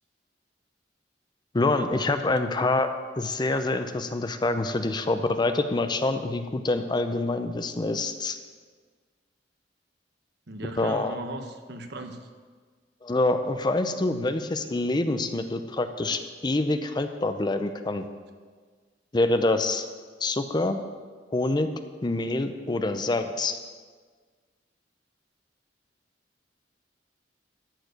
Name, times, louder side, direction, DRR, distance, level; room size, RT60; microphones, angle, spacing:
voice 1, 1.5-2.9 3.2-8.4 10.8-11.2 13.0-18.1 19.1-19.9 20.2-20.8 21.3-21.7 22.0-23.6, left 2 dB, 25° left, 8 dB, 0.5 m, -26 dB
voice 2, 10.5-12.2, right 2 dB, 65° right, 6 dB, 1.0 m, -37 dB
13.0 x 4.7 x 7.9 m, 1.5 s
head